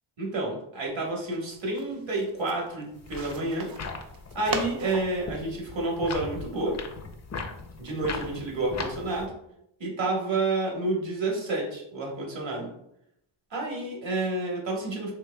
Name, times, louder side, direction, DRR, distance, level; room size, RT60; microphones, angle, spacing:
voice 1, 0.2-3.7 4.3-6.8 7.8-9.3 9.8-12.7 13.5-15.1, right 2 dB, 65° right, -2 dB, 1.4 m, -29 dB
sound 1, 0.9-6.4, right 4 dB, 45° right, 0.6 m, -40 dB
sound 2, 3.0-9.3, left 4 dB, 35° left, 0.6 m, -38 dB
4.6 x 3.1 x 2.2 m, 0.78 s
cardioid pair, 80°, 49 cm